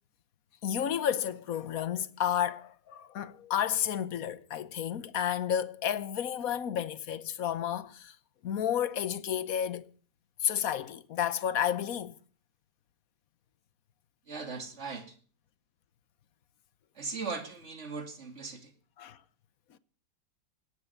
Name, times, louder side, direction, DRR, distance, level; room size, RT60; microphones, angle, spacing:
voice 1, 0.6-8.1 8.4-9.9 10.4-12.1 19.0-19.2, left 9 dB, 55° left, 1.2 m, -31 dB
voice 2, 14.3-15.0 17.0-18.7, right 4 dB, 35° right, 2.5 m, -38 dB
18.0 x 9.9 x 6.7 m
omnidirectional pair, 2.1 m